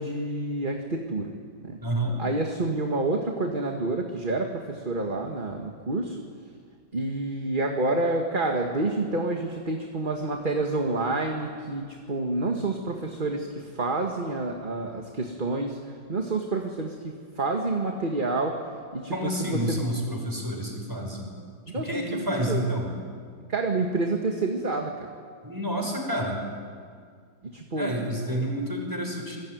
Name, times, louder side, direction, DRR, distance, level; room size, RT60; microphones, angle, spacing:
voice 1, 0.0-1.3 1.6-1.8 2.2-6.2 6.9-18.6 18.9-19.9 21.7-22.7 23.5-25.1 27.4-27.9 28.3-28.4, right 2 dB, 30° right, 2 dB, 1.8 m, -28 dB
voice 2, 1.8-2.2 19.1-21.3 21.7-22.9 25.4-26.4 27.7-29.4, equal, 10° right, 1 dB, 5.8 m, -29 dB
26.5 x 21.5 x 9.4 m, 2.1 s
omnidirectional pair, 1.9 m